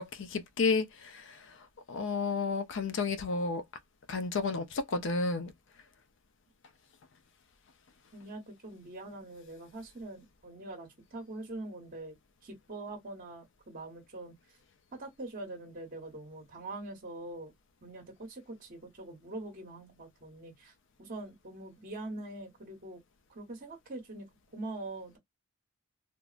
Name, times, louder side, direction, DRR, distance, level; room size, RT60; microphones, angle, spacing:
voice 1, 0.0-3.6 4.1-5.5, left 4 dB, 55° left, 0.5 m, -32 dB
voice 2, 8.1-12.2 12.4-14.3 15.0-17.5 17.8-20.7 21.0-23.0 23.3-25.2, right 2 dB, 40° right, 1.0 m, -43 dB
3.5 x 2.0 x 2.4 m
head